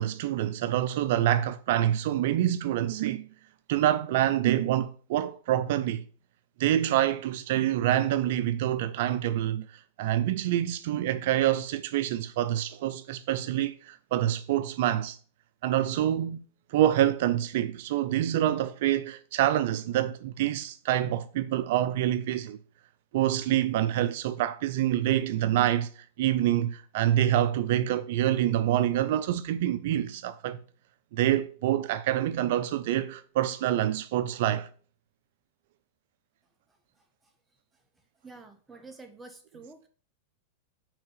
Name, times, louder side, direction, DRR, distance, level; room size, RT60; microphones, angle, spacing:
voice 1, 0.0-3.3 3.7-6.0 6.6-15.2 15.6-16.4 16.7-22.6 23.1-30.6 31.1-34.7, right 12 dB, 65° right, 0.5 m, -26 dB
voice 2, 38.2-39.9, right 3 dB, 10° right, 1.4 m, -48 dB
6.0 x 4.6 x 6.5 m
hypercardioid pair, 125°, 0 cm